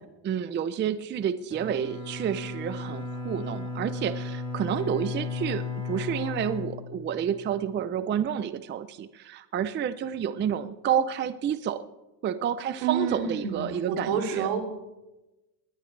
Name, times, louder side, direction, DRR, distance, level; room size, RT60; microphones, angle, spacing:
voice 1, 0.2-11.8 12.2-14.5, right 8 dB, 25° right, 13 dB, 0.5 m, -29 dB
Bowed string instrument, 1.5-7.5, left 4 dB, 10° left, 4.5 m, -35 dB
voice 2, 12.8-14.6, right 7 dB, 75° right, 3 dB, 3.0 m, -29 dB
21.0 x 17.5 x 3.3 m, 1.1 s
supercardioid pair, 120°, 48 cm